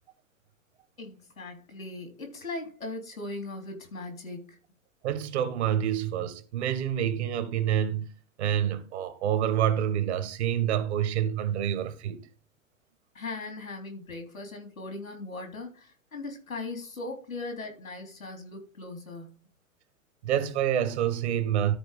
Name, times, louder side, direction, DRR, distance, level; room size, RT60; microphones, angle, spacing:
voice 1, 1.0-4.6 13.2-19.4, left 2 dB, 85° left, 3.6 m, -39 dB
voice 2, 5.0-8.1 8.4-12.2 20.2-21.8, right 10 dB, 55° right, 1.7 m, -27 dB
13.0 x 4.6 x 5.0 m
figure-of-eight pair, 110°, 40 cm